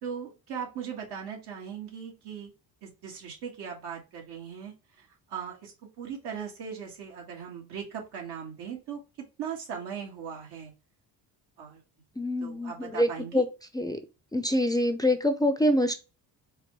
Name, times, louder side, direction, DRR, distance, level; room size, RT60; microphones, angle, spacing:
voice 1, 0.0-2.5 2.8-9.0 9.4-10.7 11.6-11.8 12.4-13.4, right 7 dB, 80° right, -1 dB, 1.8 m, -39 dB
voice 2, 12.2-13.5 13.7-14.0 14.3-15.9, left 1 dB, 10° left, 7 dB, 0.4 m, -25 dB
4.6 x 2.2 x 4.6 m, 0.30 s
cardioid pair, 95°, 39 cm